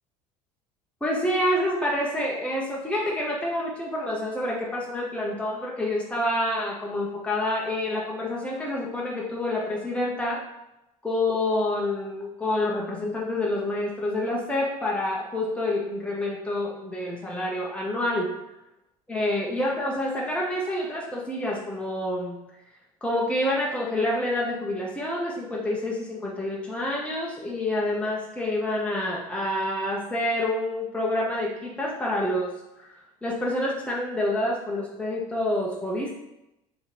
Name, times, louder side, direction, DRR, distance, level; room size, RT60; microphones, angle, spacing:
voice 1, 1.0-10.4 11.0-18.3 19.1-22.4 23.0-32.5 32.8-36.1, left 1 dB, 5° left, -4 dB, 0.9 m, -28 dB
3.5 x 3.0 x 4.3 m, 0.90 s
hypercardioid pair, 80°, 18 cm